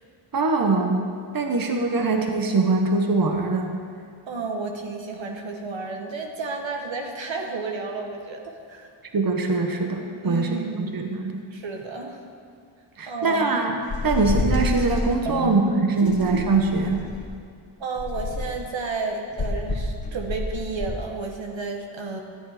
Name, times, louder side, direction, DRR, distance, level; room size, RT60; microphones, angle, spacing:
voice 1, 0.3-1.1 1.3-3.7 9.1-11.4 13.0-13.8 14.0-17.0, right 3 dB, 45° right, 3 dB, 1.2 m, -23 dB
voice 2, 4.3-8.9 10.2-11.0 11.5-12.2 13.1-13.4 14.0-14.2 15.2-16.2 17.8-22.2, right 4 dB, 65° right, 2 dB, 1.3 m, -32 dB
sound 1, 13.9-15.1 16.1-17.3 18.0-18.7 19.4-21.0, left 2 dB, 45° left, 1.5 m, -28 dB
13.5 x 8.1 x 5.0 m, 2.2 s
cardioid pair, 60°, 49 cm